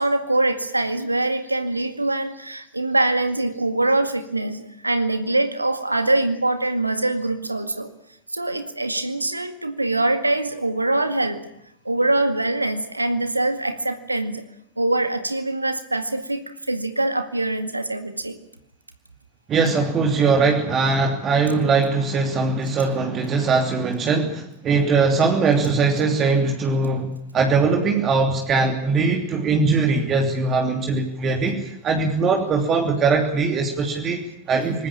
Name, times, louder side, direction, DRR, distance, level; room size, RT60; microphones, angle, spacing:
voice 1, 0.0-7.9 8.3-11.5 11.8-14.4 14.8-18.4, right 2 dB, 85° right, 10 dB, 2.0 m, -23 dB
voice 2, 19.5-34.9, right 4 dB, 30° right, 3 dB, 3.0 m, -21 dB
24.0 x 20.0 x 8.7 m, 0.76 s
figure-of-eight pair, 90°, 0 cm